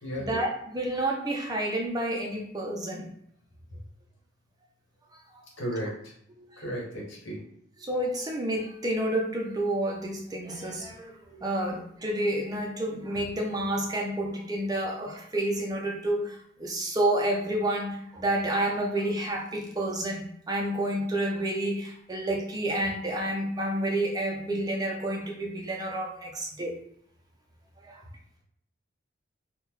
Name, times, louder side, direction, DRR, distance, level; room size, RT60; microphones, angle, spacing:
voice 1, 0.2-3.1 5.3-5.4 6.4-6.6 7.8-26.7 27.8-28.0, right 1 dB, 20° right, 1 dB, 0.3 m, -30 dB
voice 2, 5.6-6.1 6.6-7.4, equal, 70° left, -2 dB, 1.0 m, -34 dB
3.7 x 2.1 x 2.9 m, 0.69 s
head